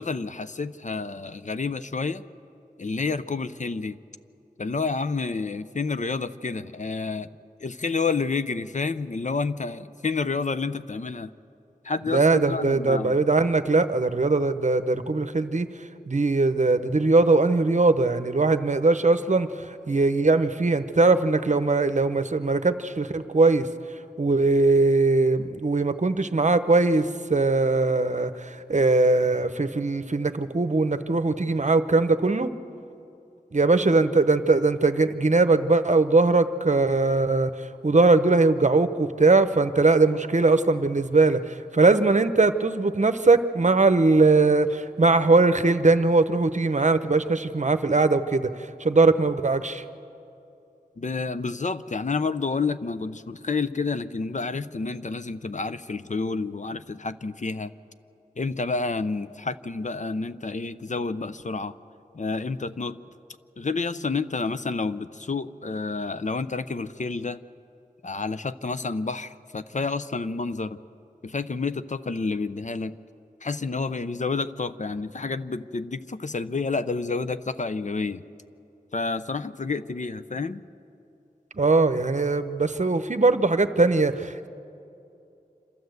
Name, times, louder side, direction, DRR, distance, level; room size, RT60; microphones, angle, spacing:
voice 1, 0.0-2.2 2.8-4.0 4.6-7.3 7.6-11.3 11.8-13.2 51.0-57.7 58.4-61.7 62.1-63.0 63.6-67.4 68.0-70.8 71.2-73.0 73.4-78.2 78.9-80.6, left 4 dB, 50° left, 12 dB, 0.6 m, -29 dB
voice 2, 12.1-15.7 16.1-23.7 24.2-32.5 33.5-48.5 48.8-49.8 81.5-84.5, right 3 dB, 50° right, 10 dB, 0.9 m, -21 dB
27.0 x 13.0 x 8.0 m, 2.8 s
wide cardioid pair, 65°, 16 cm